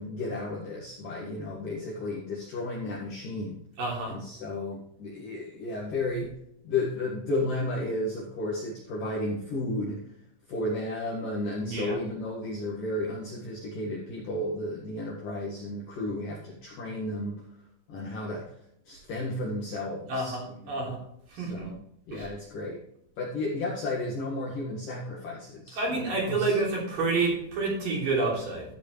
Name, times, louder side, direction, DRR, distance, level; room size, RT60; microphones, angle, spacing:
voice 1, 0.0-3.6 4.1-6.3 6.6-10.0 10.5-17.5 17.9-18.6 18.9-21.0 21.3-21.8 22.1-22.8 23.2-26.6, left 2 dB, 55° left, -4 dB, 2.6 m, -33 dB
voice 2, 3.8-4.1 11.6-12.0 20.1-21.0 21.4-21.7 22.1-22.2 25.8-28.6, right 3 dB, 45° right, -3 dB, 4.4 m, -28 dB
13.5 x 8.1 x 3.3 m, 0.74 s
omnidirectional pair, 6.0 m